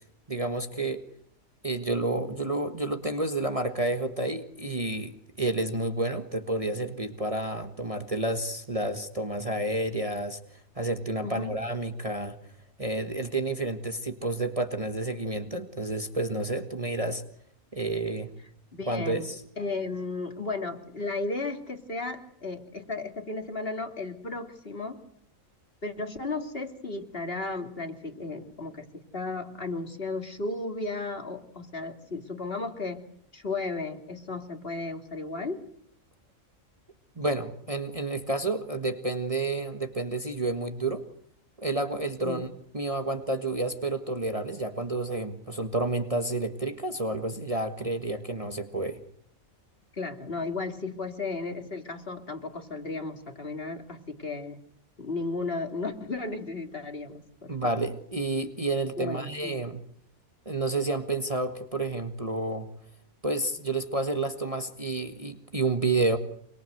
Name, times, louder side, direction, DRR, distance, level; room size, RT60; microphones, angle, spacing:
voice 1, 0.3-1.0 1.6-5.1 5.4-10.4 10.7-12.4 12.8-17.2 17.7-18.3 18.9-19.4 37.2-41.0 41.6-42.5 42.7-49.0 57.5-59.8 60.4-62.7 63.2-66.2, right 2 dB, 25° right, 7 dB, 1.6 m, -30 dB
voice 2, 11.2-11.5 18.7-25.0 25.8-35.6 42.2-42.4 49.9-54.6 55.0-57.7 59.0-59.6, left 3 dB, 45° left, 6 dB, 3.1 m, -34 dB
26.0 x 24.0 x 8.0 m, 0.70 s
omnidirectional pair, 1.4 m